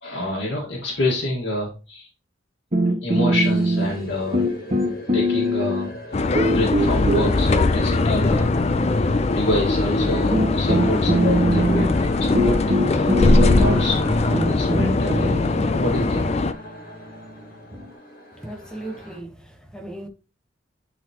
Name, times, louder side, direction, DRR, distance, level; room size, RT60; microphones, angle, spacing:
voice 1, 0.0-2.1 3.0-4.5 5.1-5.9 6.4-8.9 9.3-12.6 12.9-15.5 15.8-16.3, left 1 dB, 75° left, 1.9 m, -27 dB
sound 1, 2.7-4.1 4.3-6.0 6.4-8.8 9.8-9.9 10.3-17.8, equal, 35° right, 1.6 m, -23 dB
sound 2, 3.3-19.2, left 1 dB, 50° left, 2.0 m, -40 dB
sound 3, 6.1-16.5, left 2 dB, 35° left, 0.4 m, -20 dB
voice 2, 18.4-20.1, right 1 dB, 5° left, 1.0 m, -37 dB
10.0 x 4.1 x 3.0 m
head